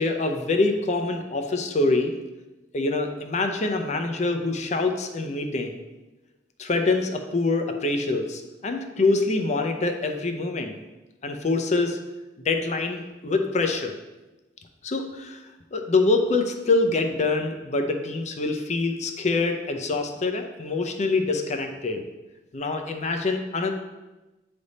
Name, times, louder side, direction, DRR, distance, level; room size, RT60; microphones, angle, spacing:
voice 1, 0.0-2.1 2.7-5.8 6.6-10.8 11.2-12.0 12.4-13.9 14.8-15.4 15.7-22.0 22.5-23.7, left 3 dB, 40° left, 5 dB, 0.6 m, -25 dB
8.3 x 3.4 x 4.0 m, 1.1 s
head